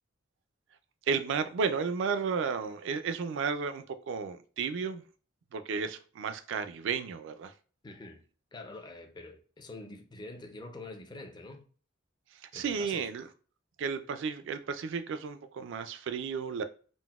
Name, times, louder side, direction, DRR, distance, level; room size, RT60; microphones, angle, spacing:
voice 1, 1.1-5.0 5.5-7.5 12.5-13.3 13.8-16.6, right 5 dB, 65° right, 0.3 m, -33 dB
voice 2, 7.8-8.2 8.5-11.6 12.5-13.3, left 2 dB, 20° left, 0.4 m, -46 dB
3.8 x 2.0 x 2.3 m
head